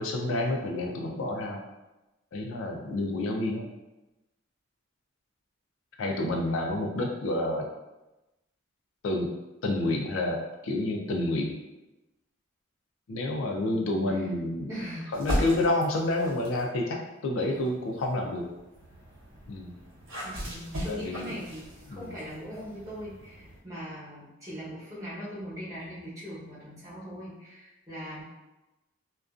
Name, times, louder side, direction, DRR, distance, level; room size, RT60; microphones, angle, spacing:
voice 1, 0.0-1.6 2.3-3.7 6.0-7.7 9.0-9.3 9.6-10.4 10.6-11.5 13.1-14.7 15.1-18.5 19.5-19.7 20.9-21.3 21.9-22.1, left 2 dB, 75° left, 1 dB, 0.4 m, -29 dB
voice 2, 6.1-6.9 13.6-14.3 14.7-15.2 20.2-28.2, equal, 15° right, -10 dB, 0.8 m, -41 dB
sound 1, 15.1-16.7 17.4-23.6, equal, 80° right, 0.8 m, -37 dB
2.4 x 2.2 x 2.4 m, 1.0 s
head